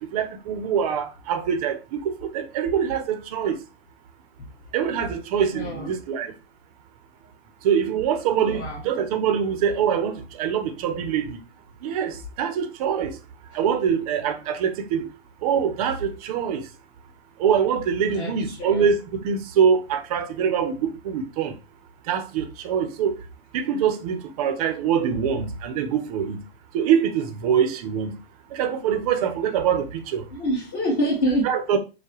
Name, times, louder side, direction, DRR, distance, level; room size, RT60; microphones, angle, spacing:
voice 1, 0.0-3.6 4.7-6.3 7.6-11.4 11.8-13.2 13.5-15.1 15.4-16.7 17.4-21.6 22.1-23.2 23.5-26.4 26.7-28.1 28.5-30.3 31.4-31.8, right 7 dB, 35° right, 0.6 m, -24 dB
voice 2, 5.5-5.9 8.4-8.8 18.1-18.9 30.3-31.5, equal, 30° left, 1.5 m, -26 dB
6.6 x 2.2 x 2.9 m
hypercardioid pair, 145°, 32 cm